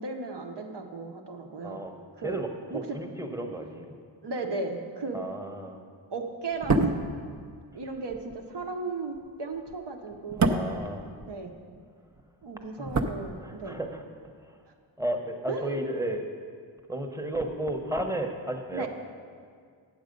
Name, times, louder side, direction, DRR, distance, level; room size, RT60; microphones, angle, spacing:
voice 1, 0.0-1.8 2.2-2.4 2.7-3.0 4.2-5.2 6.1-7.0 7.7-10.7 11.3-11.5 12.4-13.8 15.5-15.8 18.7-18.9, right 3 dB, 60° right, 3 dB, 1.0 m, -35 dB
voice 2, 1.6-1.9 2.2-3.9 5.1-5.8 10.5-11.0 12.8-12.9 13.4-14.0 14.5-14.6 15.0-16.3 16.9-18.9, right 1 dB, 5° right, 3 dB, 1.0 m, -33 dB
sound 1, 6.5-11.8 12.1-13.9 14.2-14.3, right 3 dB, 35° right, 0.8 m, -30 dB
8.1 x 7.4 x 5.3 m, 2.1 s
cardioid pair, 50°, 46 cm